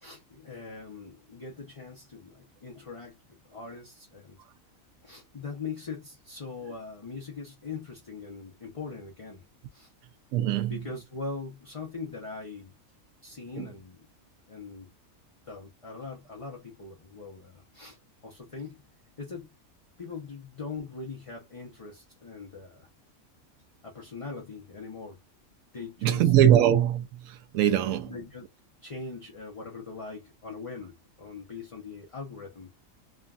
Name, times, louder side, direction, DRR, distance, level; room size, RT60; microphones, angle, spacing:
voice 1, 0.0-3.2 3.5-4.4 5.0-9.4 9.7-9.9 10.7-12.7 13.2-14.1 14.5-14.9 15.5-18.0 18.2-18.8 19.2-19.5 20.0-22.9 23.8-25.2 25.7-26.5 27.6-27.7 28.1-28.4 28.8-32.7, left 4 dB, 35° left, 0.5 m, -41 dB
voice 2, 10.3-10.9 13.6-13.7 26.0-28.2, right 10 dB, 80° right, 1.0 m, -22 dB
3.4 x 2.3 x 2.4 m
omnidirectional pair, 1.4 m